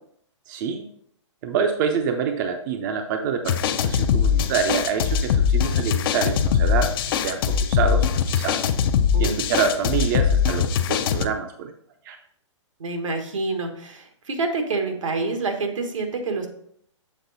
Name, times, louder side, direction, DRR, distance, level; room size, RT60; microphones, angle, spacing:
voice 1, 0.5-0.9 1.4-8.6 9.2-11.7 12.0-12.2, right 6 dB, 40° right, 6 dB, 0.6 m, -26 dB
sound 1, 3.5-11.2, left 7 dB, 45° left, 0.5 m, -21 dB
voice 2, 12.8-16.5, right 3 dB, 85° right, 4 dB, 1.4 m, -27 dB
7.2 x 3.8 x 4.0 m, 0.66 s
hypercardioid pair, 140°, 16 cm